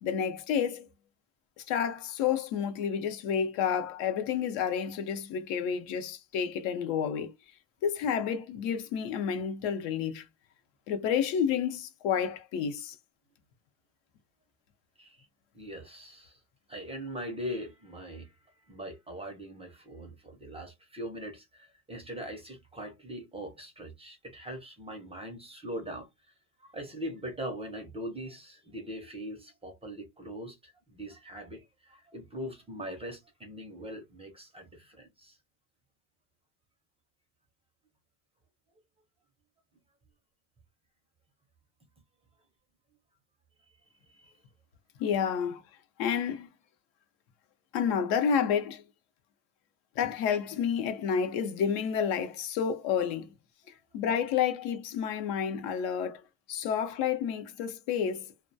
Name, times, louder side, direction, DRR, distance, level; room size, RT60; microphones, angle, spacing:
voice 1, 0.0-0.9 1.6-7.3 7.8-10.2 10.9-12.9 45.0-45.6 46.0-46.5 47.7-48.8 50.0-53.3 53.9-56.2 56.5-58.3, left 7 dB, 75° left, 0.8 m, -30 dB
voice 2, 15.5-16.4 16.7-18.3 18.7-26.1 26.6-35.4 43.6-43.7 44.1-44.3, equal, 15° right, 0.4 m, -41 dB
2.3 x 2.1 x 2.5 m
cardioid pair, 140°, 46 cm